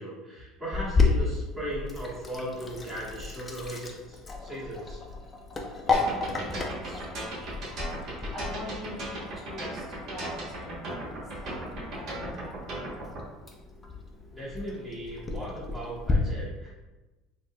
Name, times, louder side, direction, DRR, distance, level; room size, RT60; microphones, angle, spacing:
voice 1, 0.0-5.0 14.3-16.7, right 1 dB, 20° right, -9 dB, 1.3 m, -37 dB
Sink (filling or washing), 0.7-16.1, left 4 dB, 20° left, 0.4 m, -33 dB
voice 2, 5.8-7.7 8.0-12.7, left 1 dB, 5° left, -9 dB, 1.3 m, -43 dB
sound 1, 5.9-13.2, right 1 dB, 55° right, 1.1 m, -36 dB
3.9 x 2.1 x 2.3 m, 1.1 s
supercardioid pair, 105°, 0 cm